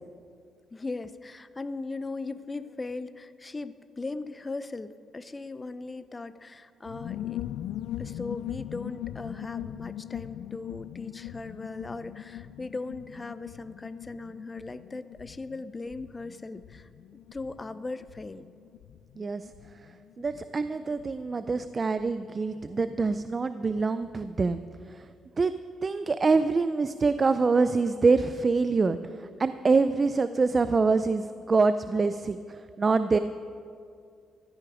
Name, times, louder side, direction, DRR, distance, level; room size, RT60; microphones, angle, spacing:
voice 1, 0.7-7.4 8.0-16.9 17.3-18.4, left 3 dB, 25° left, 13 dB, 0.6 m, -38 dB
sound 1, 6.8-23.1 23.4-23.5 23.7-24.1, left 12 dB, 80° left, 0.4 m, -41 dB
voice 2, 19.2-19.5 20.2-24.6 24.8-25.1 25.4-25.5 25.8-33.2, right 4 dB, 35° right, 11 dB, 0.4 m, -25 dB
15.0 x 13.0 x 5.0 m, 2.3 s
cardioid pair, 90°, 0 cm